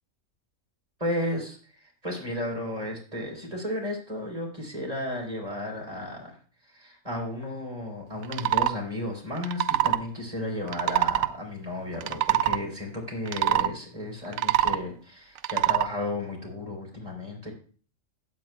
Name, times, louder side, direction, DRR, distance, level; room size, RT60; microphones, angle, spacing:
voice 1, 1.0-6.4 6.6-17.5, left 1 dB, 30° right, -1 dB, 3.9 m, -33 dB
sound 1, 8.2-8.7 9.4-10.0 10.7-11.3 11.9-12.6 13.3-13.7 14.2-14.8 15.4-15.9, right 13 dB, 90° right, 1.0 m, -24 dB
17.5 x 8.3 x 2.3 m, 0.40 s
omnidirectional pair, 1.4 m